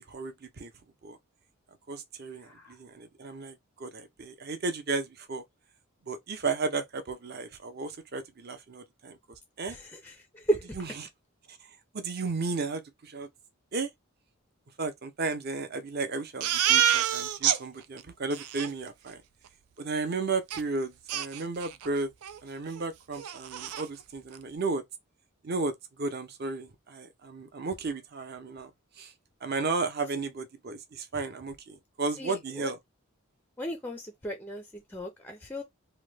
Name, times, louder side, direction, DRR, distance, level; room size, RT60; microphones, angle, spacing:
voice 1, 0.1-0.7 1.0-1.2 1.9-5.4 6.1-9.2 9.6-9.8 10.7-11.1 11.5-11.6 11.9-13.3 13.7-13.9 14.8-19.2 19.8-22.1 22.4-24.8 25.4-28.7 29.0-29.1 29.4-32.8, right 3 dB, 45° right, 0.6 m, -34 dB
voice 2, 9.7-10.7 32.2-32.7 33.6-35.6, right 1 dB, 10° left, 0.4 m, -34 dB
Crying sobbing, 16.4-17.6 18.0-18.1 18.3-18.7 20.5-20.6 21.1-21.9 22.2-22.4 22.7-22.8 23.2-23.9, right 10 dB, 90° right, 0.4 m, -27 dB
2.9 x 2.2 x 3.2 m
head